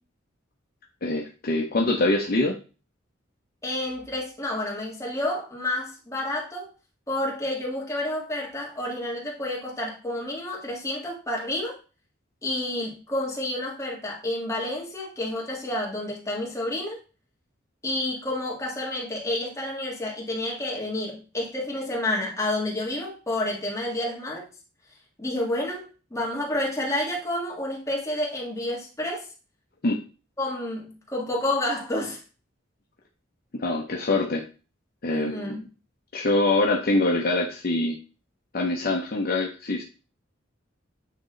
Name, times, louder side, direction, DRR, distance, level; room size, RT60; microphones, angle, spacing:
voice 1, 1.0-2.6 29.8-30.0 33.5-34.4 35.0-35.6 36.1-38.0 38.5-39.8, left 2 dB, 50° left, -1 dB, 0.7 m, -24 dB
voice 2, 3.6-6.7 7.1-11.7 12.4-17.0 17.8-24.5 25.2-29.3 30.4-32.2 35.1-35.6, left 1 dB, 15° left, -3 dB, 1.8 m, -29 dB
8.5 x 3.1 x 3.8 m, 0.35 s
head